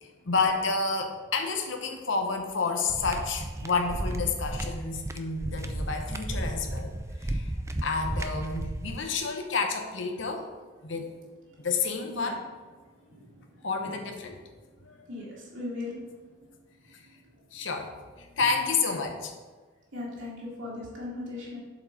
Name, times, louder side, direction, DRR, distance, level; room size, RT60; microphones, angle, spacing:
voice 1, 0.0-6.9 7.2-7.5 7.8-10.4 10.8-11.1 11.6-12.4 13.6-14.4 14.8-15.0 16.9-17.0 17.5-17.9 18.4-19.3, left 4 dB, 65° left, 3 dB, 0.9 m, -30 dB
sound 1, 2.9-9.0, right 1 dB, 15° right, 0.4 m, -33 dB
voice 2, 15.1-16.0 19.9-21.6, left 2 dB, 70° right, -7 dB, 2.5 m, -37 dB
7.5 x 5.1 x 5.2 m, 1.3 s
head